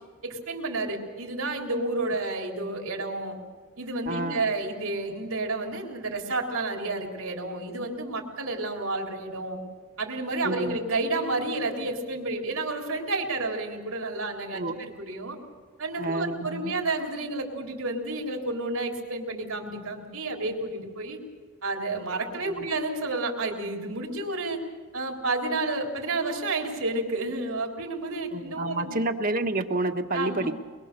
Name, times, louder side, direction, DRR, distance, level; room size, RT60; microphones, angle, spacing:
voice 1, 0.2-3.4 3.8-9.6 10.0-15.4 15.8-21.2 21.6-24.6 24.9-29.0 30.1-30.5, right 2 dB, 75° right, 2 dB, 3.7 m, -30 dB
voice 2, 4.1-4.4 10.4-10.8 14.5-14.8 16.0-16.7 22.5-22.7 28.3-30.5, right 2 dB, 40° right, 6 dB, 1.3 m, -29 dB
24.0 x 22.5 x 6.8 m, 1.5 s
head